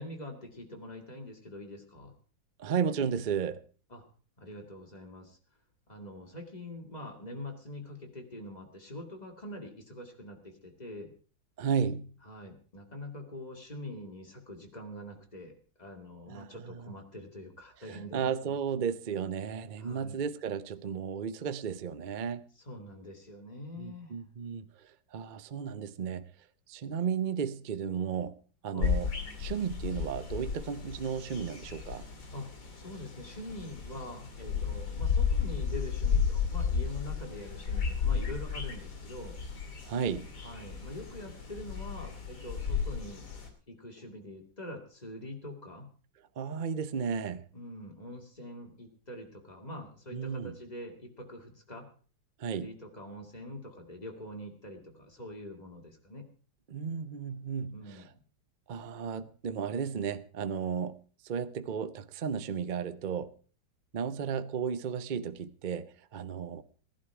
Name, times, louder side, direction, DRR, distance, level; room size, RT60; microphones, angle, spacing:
voice 1, 0.0-2.1 3.9-4.0 4.4-5.4 5.9-11.1 12.3-18.8 19.8-20.2 22.6-24.2 28.7-29.0 32.3-39.4 40.4-43.3 43.7-45.9 47.5-51.9 52.5-56.3 57.7-58.1, left 1 dB, 20° left, 2.4 m, -44 dB
voice 2, 2.6-3.6 11.6-12.1 16.3-16.9 17.9-22.4 23.8-24.7 25.1-26.3 26.7-28.4 28.6-29.1 29.4-32.0 39.9-40.3 46.4-47.4 50.1-50.6 52.4-52.7 56.7-58.0 58.7-63.3 63.9-66.6, right 7 dB, 90° right, 0.4 m, -34 dB
sound 1, 28.8-43.5, left 6 dB, 60° left, 3.0 m, -33 dB
17.0 x 11.5 x 4.8 m
omnidirectional pair, 2.0 m